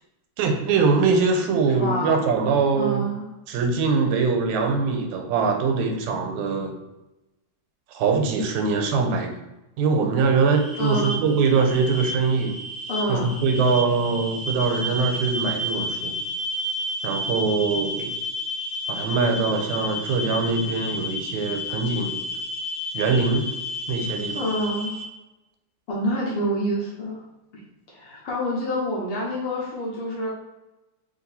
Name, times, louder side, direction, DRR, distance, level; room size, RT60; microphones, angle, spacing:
voice 1, 0.4-3.0 3.5-6.8 7.9-9.4 9.8-12.5 13.1-16.2 17.0-18.1 18.9-22.2 22.9-23.5 23.9-24.4, right 4 dB, 90° right, 4 dB, 2.0 m, -22 dB
voice 2, 1.7-2.3 2.8-3.2 10.8-11.2 12.9-13.3 24.3-25.0 25.9-27.2 27.5-27.6 27.9-30.3, equal, 60° left, -5 dB, 1.6 m, -27 dB
sound 1, 10.5-25.0, left 1 dB, 60° right, 0.4 m, -31 dB
4.3 x 3.0 x 4.0 m, 1.0 s
omnidirectional pair, 3.4 m